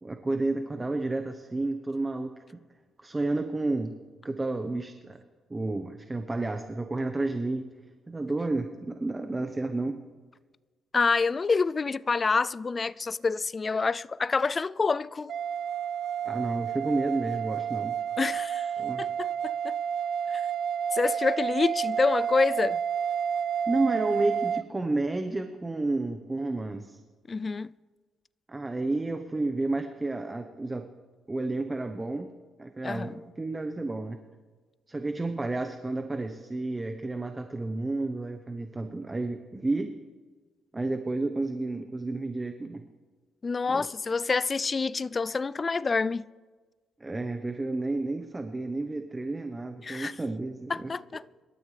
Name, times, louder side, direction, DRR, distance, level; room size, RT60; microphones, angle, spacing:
voice 1, 0.0-2.6 3.0-3.9 4.2-5.2 5.5-7.7 8.1-10.0 16.2-17.9 18.8-19.1 23.7-27.0 28.5-30.9 31.3-32.3 32.6-34.2 34.9-39.9 40.7-42.8 43.7-43.9 47.0-50.9, right 2 dB, 20° right, 0.9 m, -31 dB
voice 2, 10.9-15.3 18.2-18.7 19.0-19.8 20.3-20.4 20.9-22.8 27.3-27.7 32.8-33.1 43.4-46.2 49.8-50.1 50.7-51.2, left 4 dB, 30° left, 0.3 m, -27 dB
sound 1, 15.3-24.6, right 8 dB, 65° right, 0.5 m, -30 dB
26.0 x 13.0 x 3.3 m
cardioid pair, 90°, 0 cm